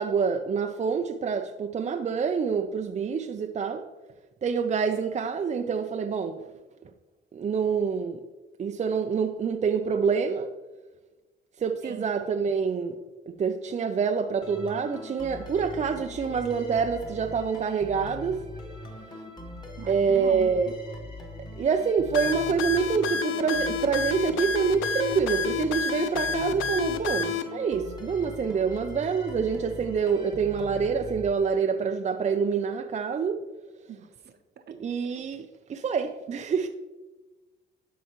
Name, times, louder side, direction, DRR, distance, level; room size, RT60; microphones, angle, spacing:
voice 1, 0.0-3.9 4.4-6.5 7.3-8.2 8.6-10.5 11.6-13.0 13.3-18.4 19.9-20.7 21.6-33.4 34.7-36.7, right 6 dB, 35° right, 0.5 m, -26 dB
sound 1, 14.4-31.9, left 1 dB, 20° left, 1.5 m, -41 dB
voice 2, 19.8-20.5 33.9-34.1 34.7-34.8, right 8 dB, 55° right, 0.9 m, -40 dB
sound 2, 22.1-27.4, left 6 dB, 80° left, 0.6 m, -29 dB
12.5 x 4.6 x 3.1 m
cardioid pair, 90°, 20 cm